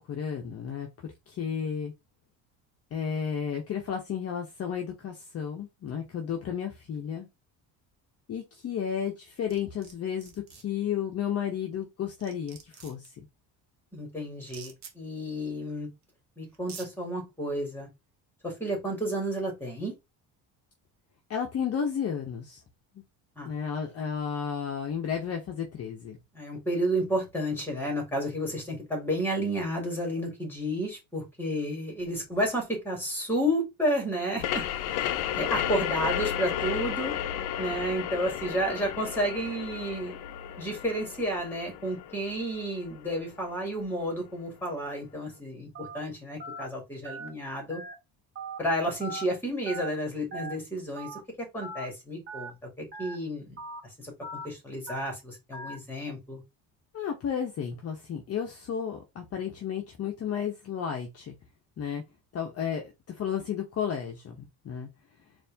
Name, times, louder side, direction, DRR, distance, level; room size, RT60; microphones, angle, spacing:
voice 1, 0.0-1.9 2.9-7.3 8.3-13.0 21.3-22.6 23.5-26.2 56.9-61.3 61.8-62.0 62.3-64.4 64.6-64.9, left 8 dB, 40° left, 0.8 m, -32 dB
sound 1, 9.5-9.9 10.2-10.6 11.8-11.9 12.2-13.1 14.4-14.9 16.0-16.1 16.5-16.9, right 7 dB, 45° right, 1.1 m, -46 dB
voice 2, 13.9-15.9 16.4-17.9 18.4-19.9 23.4-23.5 26.3-37.1 37.6-40.2 40.6-47.8 48.6-53.6 54.0-54.1 54.4-56.4, equal, 5° left, 2.1 m, -31 dB
sound 2, 34.4-43.8, left 10 dB, 80° left, 0.6 m, -33 dB
Telephone, 45.7-46.0 46.4-46.6 47.0-47.3 47.7-47.9 48.3-48.6 49.0-49.2 49.7-49.9 50.3-50.5 51.0-51.2 51.6-51.8 52.3-52.5 52.9-53.1 53.6-53.8 54.2-54.4 54.9-55.1 55.5-55.7, right 2 dB, 30° right, 1.2 m, -39 dB
4.2 x 2.6 x 3.4 m
cardioid pair, 140°, 38 cm